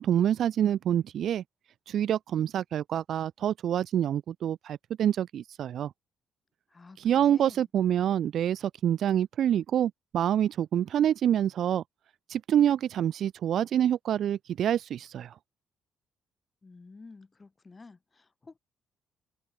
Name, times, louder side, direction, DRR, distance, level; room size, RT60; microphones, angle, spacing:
voice 1, 0.0-1.4 1.9-5.9 7.0-11.8 12.3-15.3, right 10 dB, 70° right, 0.6 m, -26 dB
voice 2, 6.7-7.7 16.6-18.6, left 3 dB, 25° left, 4.1 m, -51 dB
open air
cardioid pair, 90°, 0 cm